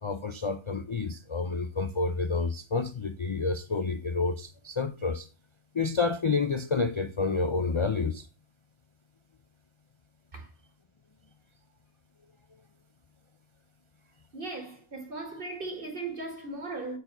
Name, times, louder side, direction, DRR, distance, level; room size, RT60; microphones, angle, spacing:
voice 1, 0.0-5.3 5.7-8.3, left 4 dB, 50° left, 0.3 m, -29 dB
voice 2, 14.3-17.0, right 3 dB, 40° right, 2.1 m, -37 dB
8.4 x 4.4 x 5.4 m
omnidirectional pair, 1.4 m